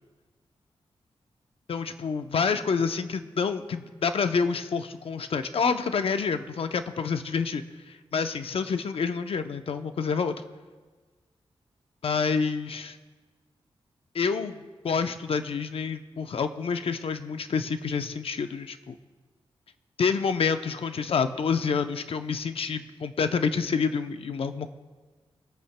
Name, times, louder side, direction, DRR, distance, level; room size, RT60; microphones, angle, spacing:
voice 1, 1.7-10.3 12.0-13.0 14.1-19.0 20.0-24.7, left 5 dB, 65° left, 9 dB, 0.7 m, -28 dB
25.0 x 8.5 x 2.2 m, 1.4 s
cardioid pair, 70°, 10 cm